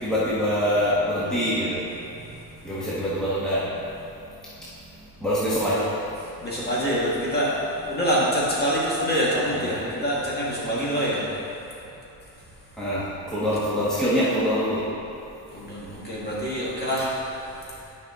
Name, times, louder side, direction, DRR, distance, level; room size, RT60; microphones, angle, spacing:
voice 1, 0.0-1.8 2.6-3.6 5.2-5.9 9.6-9.7 12.8-13.0 13.3-14.8, equal, ahead, -11 dB, 1.2 m, -24 dB
voice 2, 5.3-5.7 6.4-7.5 7.9-11.2 15.5-17.1, equal, 25° left, -7 dB, 1.8 m, -25 dB
9.6 x 5.4 x 3.7 m, 2.9 s
cardioid pair, 155°, 36 cm